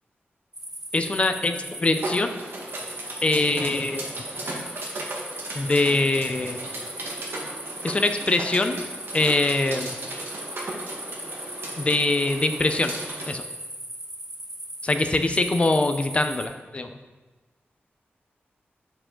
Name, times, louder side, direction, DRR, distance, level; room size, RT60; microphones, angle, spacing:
sound 1, 0.5-16.5, right 1 dB, 10° right, 0.7 m, -38 dB
voice 1, 0.9-2.4 3.2-4.1 5.5-6.6 7.8-8.8 9.1-9.9 11.8-12.9 13.3-13.4 14.8-16.9, left 2 dB, 30° left, 7 dB, 0.4 m, -23 dB
sound 2, 1.9-13.3, right 2 dB, 65° right, 1.1 m, -36 dB
6.7 x 4.8 x 3.7 m, 1.3 s
wide cardioid pair, 140°, 4 cm